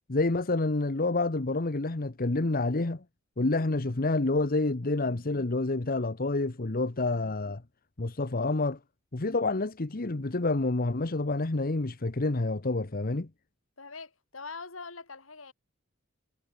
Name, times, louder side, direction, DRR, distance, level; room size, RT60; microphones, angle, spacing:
voice 1, 0.1-3.0 3.4-7.6 8.0-8.8 9.1-13.3, left 2 dB, 45° left, 1.1 m, -28 dB
voice 2, 13.8-15.5, left 4 dB, 80° left, 3.3 m, -43 dB
head